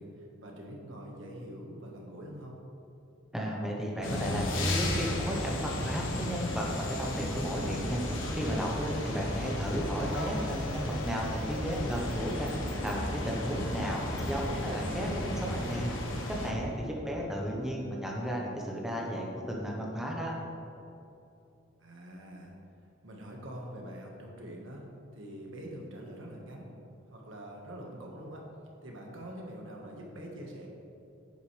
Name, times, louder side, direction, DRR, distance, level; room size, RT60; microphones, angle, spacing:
voice 1, 0.0-2.6 17.1-17.7 21.8-22.5 23.0-24.9 25.1-26.7 27.1-28.5 28.8-30.7, equal, 75° right, -1 dB, 1.6 m, -45 dB
voice 2, 3.3-8.0 8.3-12.5 12.8-15.9 16.4-20.3, equal, ahead, -2 dB, 1.0 m, -34 dB
sound 1, 4.0-16.5, left 1 dB, 75° left, 1.3 m, -34 dB
10.0 x 8.9 x 3.4 m, 2.7 s
head